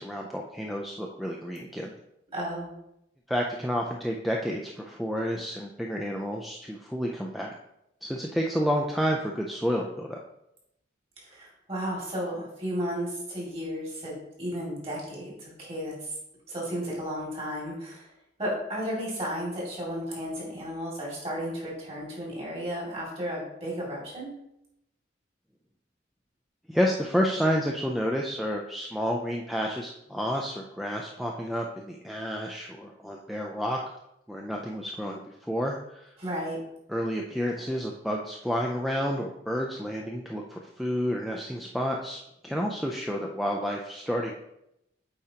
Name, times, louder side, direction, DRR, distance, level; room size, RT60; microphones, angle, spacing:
voice 1, 0.0-1.9 3.3-7.5 8.0-10.2 26.7-33.8 34.3-36.1 36.9-44.3, equal, ahead, -1 dB, 0.3 m, -30 dB
voice 2, 2.3-2.8 11.2-16.1 16.5-18.1 18.4-24.3 36.2-36.6, equal, 30° right, -4 dB, 2.2 m, -33 dB
8.5 x 4.4 x 2.8 m, 0.82 s
head